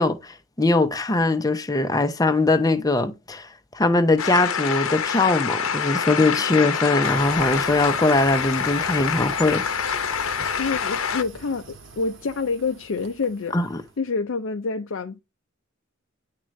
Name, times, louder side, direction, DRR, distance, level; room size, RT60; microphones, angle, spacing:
voice 1, 0.0-9.7 13.5-13.8, left 2 dB, 20° left, 0.6 m, -21 dB
sound 1, 4.2-11.2, left 7 dB, 85° left, 0.8 m, -26 dB
sound 2, 7.0-13.9, right 3 dB, 65° right, 1.5 m, -42 dB
voice 2, 10.6-13.6 14.0-15.2, left 4 dB, 65° left, 0.5 m, -27 dB
10.0 x 3.7 x 3.1 m
head